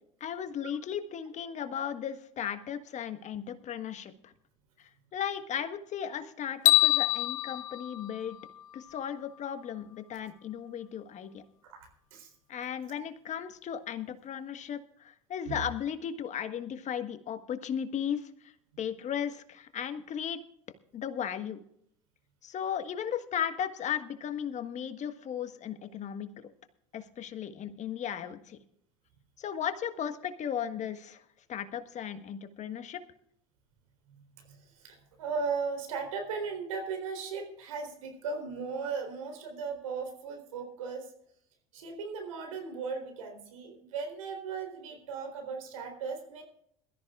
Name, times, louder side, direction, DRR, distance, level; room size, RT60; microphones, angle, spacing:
voice 1, 0.2-4.3 5.1-8.4 8.7-11.4 12.5-18.3 18.8-20.4 20.9-21.6 22.4-26.3 26.9-28.6 29.4-31.2 31.5-33.0, left 9 dB, 45° left, 9 dB, 1.5 m, -36 dB
sound 1, 6.7-8.9, left 17 dB, 90° left, 0.5 m, -26 dB
voice 2, 11.7-12.3 15.5-15.6 34.5-34.6 34.8-41.1 41.7-46.4, right 5 dB, 85° right, 4 dB, 3.8 m, -37 dB
22.0 x 14.0 x 2.5 m, 0.68 s
hypercardioid pair, 75°, 17 cm